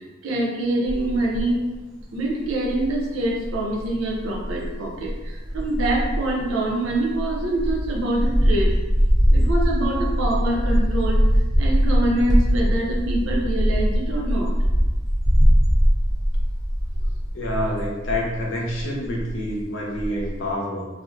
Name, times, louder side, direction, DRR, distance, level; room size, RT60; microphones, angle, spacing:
voice 1, 0.2-1.6 2.1-8.8 9.3-11.3 11.6-14.5, right 1 dB, 90° right, -1 dB, 0.5 m, -25 dB
sound 1, 0.9-1.5 2.0-2.1 2.4-18.4 18.7-19.6 20.0-20.3, equal, 20° right, 0.3 m, -21 dB
voice 2, 17.3-20.9, left 1 dB, 70° left, -3 dB, 0.6 m, -27 dB
2.4 x 2.1 x 2.5 m, 1.1 s
head